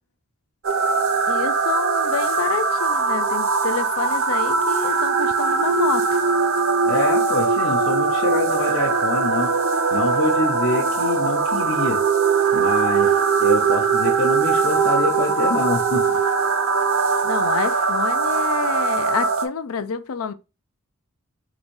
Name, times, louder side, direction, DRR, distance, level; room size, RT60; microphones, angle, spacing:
sound 1, 0.6-19.5, right 5 dB, 70° right, 0.6 m, -21 dB
voice 1, 1.3-6.1 17.2-20.3, left 6 dB, 85° left, 0.5 m, -28 dB
voice 2, 6.8-9.5 9.9-12.0 12.5-16.2, left 2 dB, 60° left, 0.9 m, -25 dB
4.0 x 2.6 x 4.7 m
head